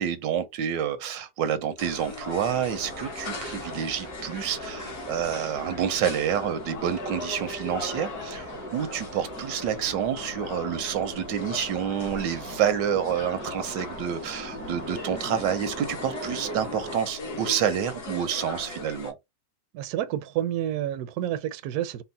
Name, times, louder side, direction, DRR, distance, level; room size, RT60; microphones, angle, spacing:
voice 1, 0.0-8.5 8.7-19.1, right 9 dB, 85° right, 1.4 m, -28 dB
sound 1, 1.8-19.1, left 2 dB, 60° left, 2.0 m, -39 dB
sound 2, 2.4-17.0, right 1 dB, 20° right, 0.4 m, -42 dB
voice 2, 19.7-22.0, right 11 dB, 70° right, 1.0 m, -29 dB
4.4 x 2.1 x 4.0 m
omnidirectional pair, 1.9 m